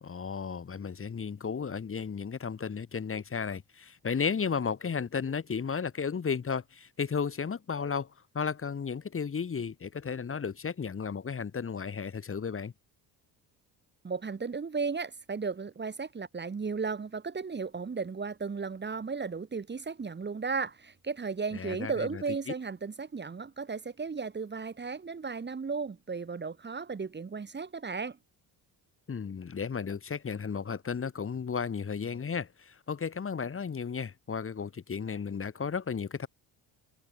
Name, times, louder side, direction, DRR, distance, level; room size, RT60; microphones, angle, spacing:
voice 1, 0.0-8.1 8.3-12.7 21.5-22.5 29.1-36.3, left 6 dB, 30° left, 2.3 m, -34 dB
voice 2, 14.0-28.2, right 5 dB, 25° right, 2.0 m, -35 dB
cardioid pair, 100°, 42 cm